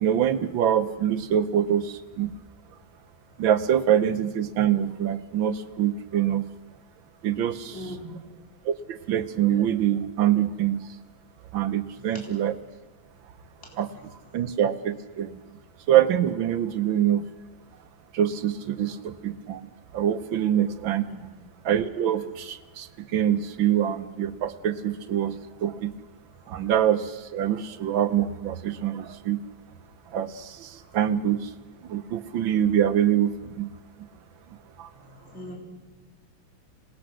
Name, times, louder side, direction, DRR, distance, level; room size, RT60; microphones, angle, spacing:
voice 1, 0.0-2.4 3.4-6.5 7.2-7.8 8.6-10.9 11.5-12.6 13.8-13.9 14.3-15.4 15.9-17.3 18.1-21.1 21.6-25.9 26.5-29.4 30.1-31.5 31.9-33.7 34.8-34.9, right 10 dB, 75° right, 12 dB, 1.7 m, -25 dB
voice 2, 7.7-8.2 12.0-12.2 13.6-14.4 18.8-18.9 21.1-21.3 26.4-26.6 30.8-31.0 34.9-35.6, equal, 30° left, -1 dB, 4.1 m, -43 dB
27.0 x 19.5 x 6.3 m, 1.2 s
omnidirectional pair, 2.3 m